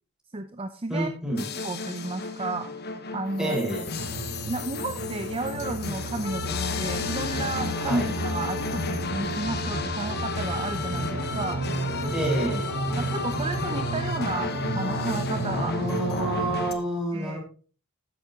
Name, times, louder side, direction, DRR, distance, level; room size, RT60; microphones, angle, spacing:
voice 1, 0.3-1.4 1.6-2.7 3.1-3.6 4.4-11.6 13.0-16.0 17.1-17.4, right 3 dB, 25° right, 8 dB, 0.6 m, -32 dB
voice 2, 0.9-1.4 3.4-3.9 7.9-8.1 12.1-12.7 15.5-17.4, right 1 dB, 5° right, -2 dB, 4.6 m, -28 dB
sound 1, 1.4-16.7, left 4 dB, 50° left, 1.2 m, -33 dB
sound 2, 4.0-16.5, right 2 dB, 80° right, 1.4 m, -33 dB
13.0 x 10.5 x 2.9 m, 0.39 s
head